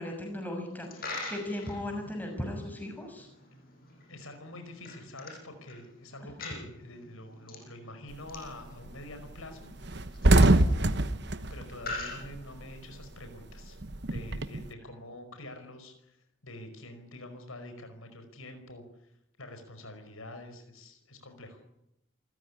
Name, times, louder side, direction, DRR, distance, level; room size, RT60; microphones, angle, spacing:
voice 1, 0.0-3.3, left 1 dB, 10° left, 3 dB, 6.3 m, -37 dB
Coin (dropping), 0.7-13.0, left 2 dB, 45° left, 7.6 m, -45 dB
voice 2, 4.1-10.1 10.3-11.2 11.5-13.8 14.1-18.8 19.4-21.6, left 1 dB, 85° left, 7 dB, 5.2 m, -46 dB
sound 1, 8.1-8.5 8.9-9.0 9.3-9.4 9.7-12.7 13.0-14.7, right 1 dB, 55° right, 1.1 m, -24 dB
28.0 x 15.0 x 9.9 m, 0.82 s
head